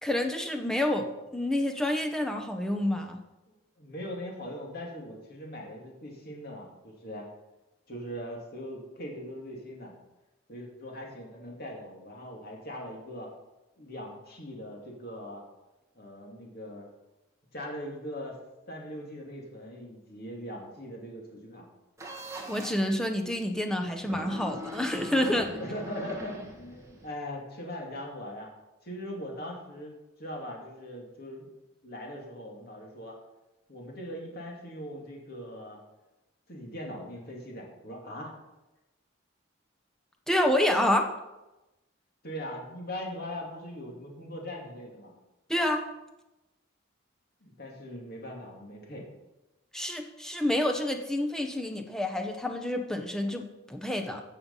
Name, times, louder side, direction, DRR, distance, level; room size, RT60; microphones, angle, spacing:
voice 1, 0.0-1.1 1.3-3.2 22.5-25.5 40.3-41.1 45.5-45.9 49.7-54.2, left 1 dB, 5° left, 3 dB, 0.9 m, -28 dB
voice 2, 3.8-7.3 7.9-9.9 10.5-13.3 13.8-15.4 15.9-16.9 17.5-18.4 18.7-21.6 25.6-28.5 28.8-29.9 30.2-31.5 31.8-33.2 33.7-35.8 36.5-38.3 42.2-45.1 47.4-49.1, equal, 45° left, -1 dB, 2.6 m, -40 dB
sound 1, 22.0-22.9 24.0-27.1, equal, 15° right, 1.4 m, -41 dB
15.5 x 5.7 x 5.5 m, 1.0 s
head